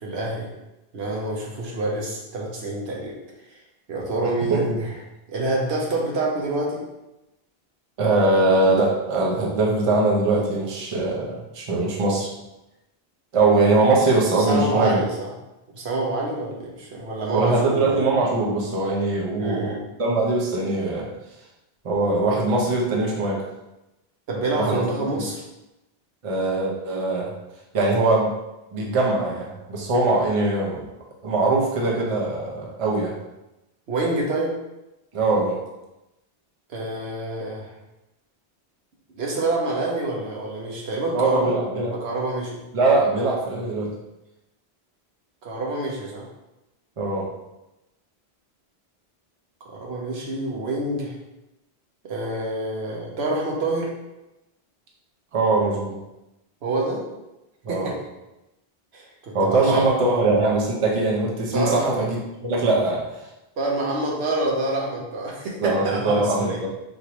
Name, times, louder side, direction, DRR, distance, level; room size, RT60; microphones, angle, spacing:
voice 1, 0.0-0.5 0.9-3.1 3.9-4.9 5.3-6.8 14.4-15.3 15.7-18.0 19.4-19.8 24.3-25.4 33.9-34.5 36.7-37.7 39.1-41.5 41.8-42.6 45.4-46.3 49.6-51.1 52.0-53.9 56.6-57.0 57.7-58.0 58.9-60.2 61.5-61.9 63.6-66.6, right 2 dB, 80° right, -2 dB, 1.1 m, -27 dB
voice 2, 8.0-12.3 13.3-15.0 17.3-19.7 20.0-21.1 21.8-23.5 24.5-24.8 25.1-25.2 26.2-27.3 27.7-28.3 28.7-30.8 31.2-33.1 35.1-35.6 41.1-41.9 42.7-43.9 47.0-47.3 55.3-56.0 57.6-57.9 59.3-63.1 65.6-66.7, right 2 dB, 35° right, -2 dB, 0.7 m, -21 dB
4.7 x 2.7 x 2.9 m, 0.95 s
omnidirectional pair, 1.1 m